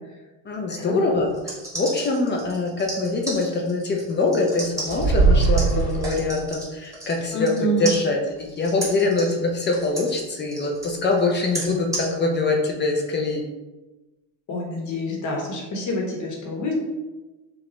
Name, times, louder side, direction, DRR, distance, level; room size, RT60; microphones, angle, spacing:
voice 1, 0.5-13.4, left 3 dB, 30° left, 2 dB, 0.5 m, -24 dB
sound 1, 1.3-7.6 7.8-12.1, right 1 dB, 10° right, 1.4 m, -33 dB
sound 2, 4.9-6.5, right 4 dB, 80° right, 1.4 m, -20 dB
voice 2, 7.3-7.9 14.5-16.7, equal, 45° left, -1 dB, 1.2 m, -27 dB
5.1 x 2.4 x 3.0 m, 1.1 s
cardioid pair, 135°, 39 cm